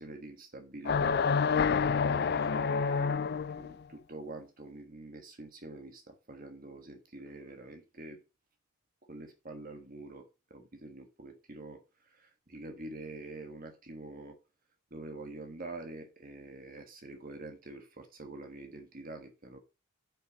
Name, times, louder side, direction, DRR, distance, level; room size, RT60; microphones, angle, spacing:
voice 1, 0.0-1.3 2.0-3.2 3.5-8.2 9.1-14.4 14.9-19.6, right 2 dB, 40° right, 1.4 m, -46 dB
sound 1, 0.8-3.7, left 5 dB, 50° left, 0.4 m, -28 dB
8.8 x 5.5 x 6.3 m
head